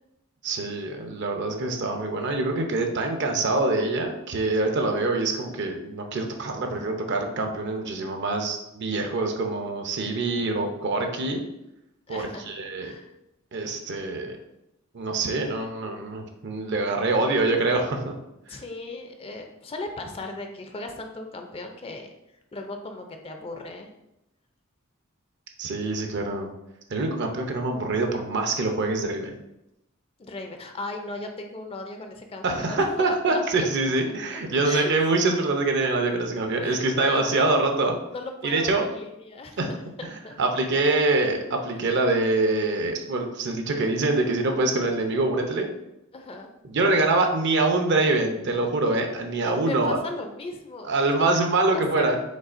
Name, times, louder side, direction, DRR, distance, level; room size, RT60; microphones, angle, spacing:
voice 1, 0.4-11.4 12.1-12.9 13.5-14.4 14.9-18.1 25.6-26.5 26.9-29.3 32.4-38.0 38.4-38.9 39.6-39.7 40.0-40.1 40.4-45.7 46.6-50.0 50.8-52.2, right 2 dB, 55° right, 4 dB, 0.6 m, -25 dB
voice 2, 12.1-12.5 12.8-13.1 18.5-22.1 22.5-23.9 30.2-33.7 34.3-35.5 36.6-37.6 38.1-40.4 46.1-46.5 49.4-51.3 51.7-52.2, left 2 dB, 25° left, 4 dB, 0.4 m, -37 dB
5.3 x 3.5 x 2.5 m, 0.88 s
head